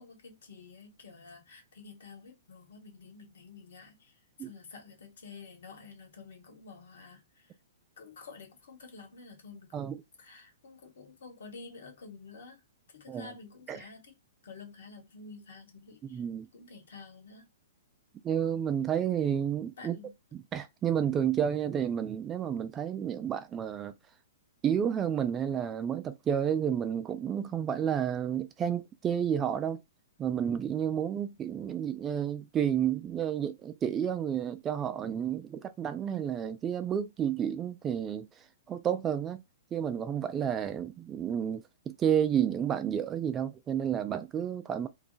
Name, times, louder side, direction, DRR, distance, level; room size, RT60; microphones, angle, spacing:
voice 1, 0.0-7.5 8.0-9.9 10.2-12.6 12.9-14.1 14.4-16.2 16.5-17.5 19.8-20.1, left 4 dB, 75° left, 1.1 m, -50 dB
voice 2, 16.0-16.5 18.2-20.0 20.3-23.9 24.6-29.8 30.2-38.3 38.7-39.4 39.7-44.9, right 9 dB, 20° right, 0.3 m, -31 dB
2.3 x 2.1 x 3.8 m
hypercardioid pair, 140°, 0 cm